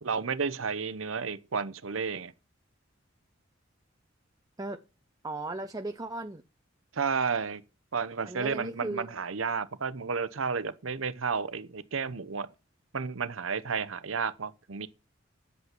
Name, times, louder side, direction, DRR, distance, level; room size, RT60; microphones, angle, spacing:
voice 1, 0.0-2.3 6.9-7.6 7.9-12.5 12.9-14.9, right 5 dB, 85° right, 0.9 m, -32 dB
voice 2, 5.2-6.4 8.2-9.1, right 2 dB, 20° right, 0.7 m, -36 dB
9.7 x 8.2 x 6.0 m
head